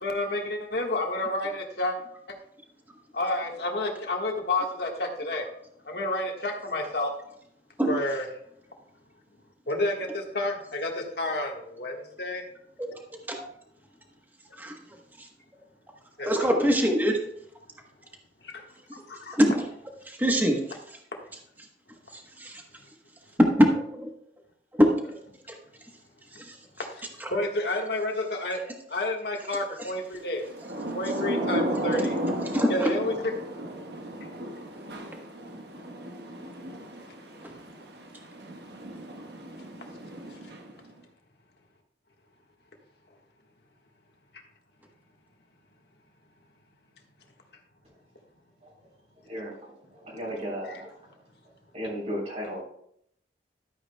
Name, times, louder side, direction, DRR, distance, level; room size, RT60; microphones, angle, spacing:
voice 1, 0.0-2.0 3.1-5.4 5.8-7.1 7.9-8.2 9.7-12.4 16.2-16.3 16.6-16.7 18.4-18.6 18.9-19.4 26.8-28.6 28.9-30.5 30.9-32.2 32.7-33.3 50.7-50.8, left 2 dB, 60° left, 1 dB, 1.5 m, -30 dB
voice 2, 16.2-17.2 19.3-19.5 20.1-20.6 22.1-22.6 23.5-24.1 24.7-25.2 26.4-26.5 27.2-27.3 32.5-32.9, equal, 10° right, 2 dB, 1.0 m, -23 dB
Thunder / Rain, 30.4-40.9, right 1 dB, 65° right, 1.2 m, -34 dB
voice 3, 49.3-49.7 50.0-50.9 51.7-52.6, equal, 35° right, -3 dB, 3.3 m, -34 dB
12.5 x 8.7 x 2.2 m, 0.71 s
head